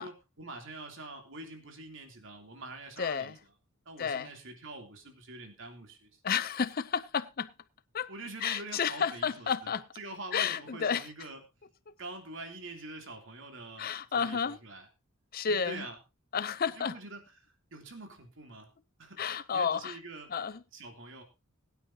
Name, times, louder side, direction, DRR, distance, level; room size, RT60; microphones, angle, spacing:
voice 1, 0.0-3.3 3.8-6.1 8.1-11.4 12.0-14.9 15.5-16.0 16.8-18.7 19.0-19.2 19.5-20.3 20.7-21.2, right 2 dB, 65° right, 3.1 m, -45 dB
voice 2, 3.0-3.4 4.0-4.3 6.2-7.5 7.9-8.1 8.4-9.9 10.3-11.1 11.9-12.0 13.8-14.6 15.3-15.8 16.3-16.9 19.2-20.0 20.3-20.6, left 6 dB, 45° left, 0.6 m, -31 dB
21.5 x 9.1 x 2.8 m
head